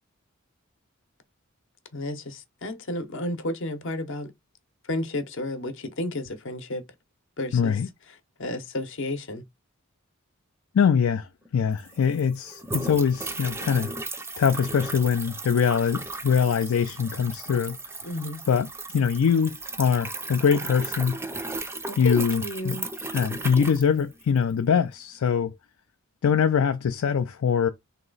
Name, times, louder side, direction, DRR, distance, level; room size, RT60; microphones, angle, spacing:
voice 1, 1.9-4.3 4.9-6.8 7.4-7.8 8.4-9.4 18.0-18.4 21.9-22.9, left 1 dB, 65° left, 0.8 m, -32 dB
voice 2, 7.5-7.9 10.7-13.9 14.4-17.8 18.5-21.2 22.0-22.8 23.1-25.5 26.2-27.7, left 7 dB, 80° left, 0.4 m, -23 dB
sound 1, 11.5-11.6 11.7-24.5, right 3 dB, 10° right, 0.5 m, -36 dB
3.1 x 2.9 x 3.8 m
head